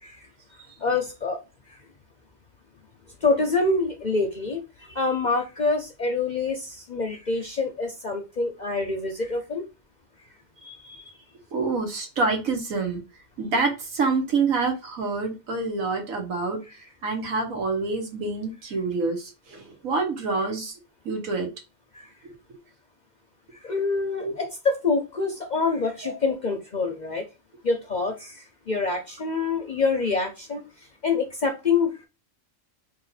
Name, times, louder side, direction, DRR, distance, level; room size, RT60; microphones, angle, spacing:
voice 1, 0.8-1.4 1.7-1.8 3.2-9.6 21.9-22.1 23.5-27.3 27.6-32.0, left 4 dB, 45° left, 3 dB, 0.6 m, -26 dB
voice 2, 10.6-11.0 11.5-13.0 13.4-16.6 17.0-20.8 21.0-21.5 22.2-22.3 24.2-24.4 26.0-26.1, right 3 dB, 80° right, 3 dB, 1.7 m, -27 dB
3.6 x 2.6 x 4.0 m, 0.28 s
omnidirectional pair, 1.4 m